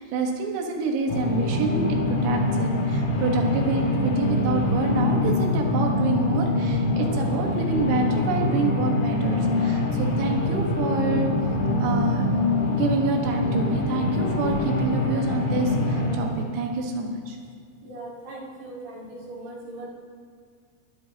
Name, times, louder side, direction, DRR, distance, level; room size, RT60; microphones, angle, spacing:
voice 1, 0.0-11.3 11.8-12.4 12.7-17.4, right 3 dB, 80° right, 2 dB, 4.0 m, -27 dB
sound 1, 1.1-16.2, left 2 dB, 55° left, 3.0 m, -24 dB
voice 2, 17.8-19.9, right 2 dB, 60° right, -5 dB, 4.2 m, -39 dB
22.5 x 11.5 x 2.9 m, 2.2 s
omnidirectional pair, 5.8 m